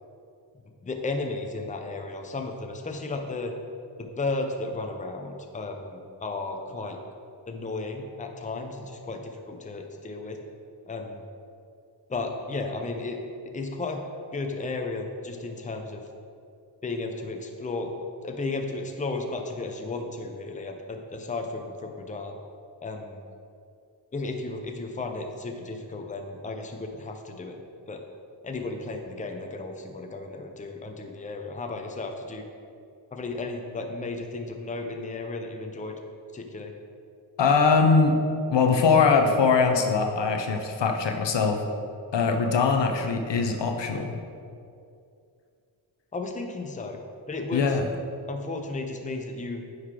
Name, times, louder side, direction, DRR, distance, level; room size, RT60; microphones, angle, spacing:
voice 1, 0.8-3.5 4.0-7.0 7.5-10.4 10.9-11.2 12.1-13.2 13.4-14.0 14.3-16.0 16.8-17.9 18.2-22.4 22.8-23.2 24.1-27.6 27.9-28.0 28.4-32.4 33.1-35.9 36.3-36.7 46.1-47.0 47.3-47.8 48.3-49.6, left 3 dB, 15° left, 4 dB, 0.6 m, -34 dB
voice 2, 37.4-38.2 38.5-41.6 42.1-44.1 47.5-47.9, left 5 dB, 65° left, 4 dB, 0.7 m, -22 dB
9.4 x 3.2 x 3.7 m, 2.5 s
cardioid pair, 50°, 47 cm